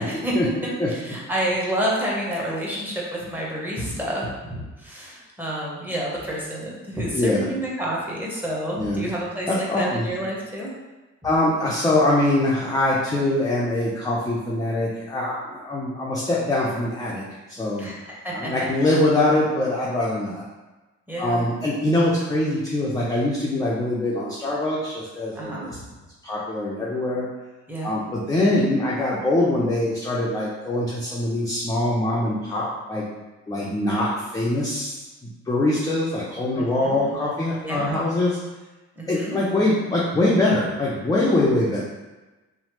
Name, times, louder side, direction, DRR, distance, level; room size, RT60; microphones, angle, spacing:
voice 1, 0.0-9.5 9.8-10.7 17.8-18.5 21.1-21.5 25.3-25.7 27.7-27.9 36.5-37.2 37.6-38.0 39.0-39.4, right 1 dB, 5° right, -5 dB, 0.8 m, -29 dB
voice 2, 7.1-7.4 8.8-9.1 9.5-10.1 11.2-17.2 17.5-17.9 18.3-20.4 21.2-25.5 26.2-27.3 27.8-33.1 33.5-35.0 35.5-38.4 39.1-41.8, left 1 dB, 10° left, -6 dB, 0.4 m, -23 dB
3.1 x 2.0 x 2.9 m, 1.2 s
cardioid pair, 90°, 30 cm